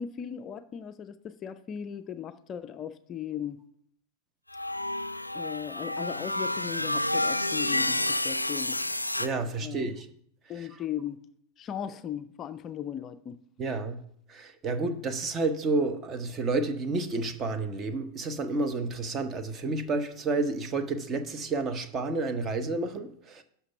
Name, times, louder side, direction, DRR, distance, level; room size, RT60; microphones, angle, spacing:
voice 1, 0.0-3.6 5.3-8.8 9.6-9.9 10.5-11.2 11.6-13.4, left 9 dB, 30° left, 0.5 m, -37 dB
sound 1, 4.5-9.3, left 1 dB, 85° left, 0.4 m, -29 dB
voice 2, 9.2-10.1 10.6-10.7 13.6-14.0 14.3-23.4, right 3 dB, 25° right, 1.0 m, -30 dB
11.5 x 5.7 x 5.5 m
figure-of-eight pair, 90°, 0 cm